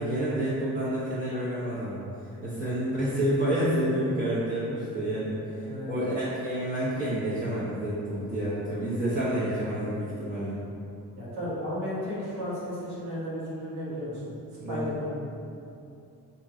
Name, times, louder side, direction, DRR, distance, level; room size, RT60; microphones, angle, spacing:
voice 1, 0.0-2.0 2.4-10.6 14.6-14.8, right 1 dB, 35° right, -12 dB, 0.9 m, -29 dB
voice 2, 5.5-6.0 11.2-14.3 14.7-15.2, equal, 90° right, -9 dB, 1.2 m, -34 dB
2.9 x 2.7 x 3.6 m, 2.7 s
cardioid pair, 90°, 36 cm